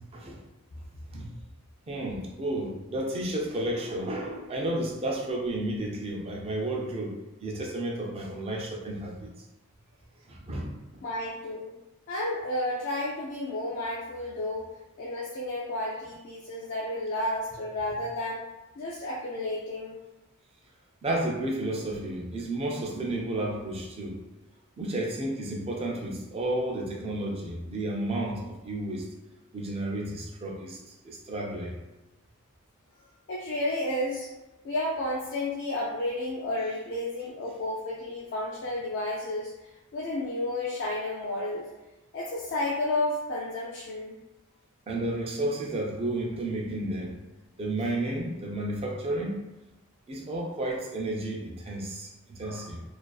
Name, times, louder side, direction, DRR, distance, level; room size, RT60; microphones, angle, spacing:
voice 1, 1.9-9.3 10.3-11.0 21.0-24.2 24.8-29.1 29.5-31.7 44.9-47.2 47.6-49.4 50.1-52.8, right 1 dB, 25° right, -1 dB, 0.3 m, -32 dB
voice 2, 11.0-11.7 12.1-14.7 15.0-18.4 18.8-20.0 33.3-34.3 34.6-41.6 42.1-44.2 52.4-52.7, left 1 dB, 55° left, -4 dB, 0.3 m, -32 dB
2.4 x 2.3 x 2.2 m, 1.0 s
head